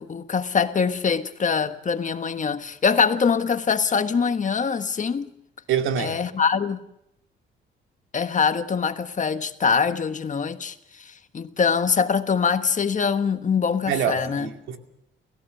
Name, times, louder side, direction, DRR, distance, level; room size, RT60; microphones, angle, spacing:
voice 1, 0.0-5.3 6.0-6.8 8.1-14.5, left 6 dB, 40° left, 1.3 m, -23 dB
voice 2, 5.7-6.2 13.9-14.8, right 8 dB, 85° right, 2.4 m, -25 dB
29.5 x 15.5 x 6.8 m
cardioid pair, 90°, 20 cm